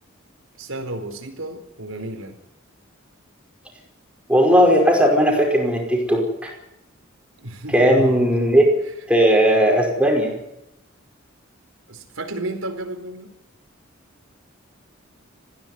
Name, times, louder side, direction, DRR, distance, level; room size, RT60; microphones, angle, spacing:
voice 1, 0.6-2.4 7.4-8.2 11.9-13.3, right 1 dB, 90° right, 5 dB, 4.4 m, -32 dB
voice 2, 4.3-6.5 7.7-8.7 9.1-10.3, equal, 5° right, 0 dB, 5.3 m, -17 dB
21.0 x 15.5 x 9.7 m, 0.85 s
head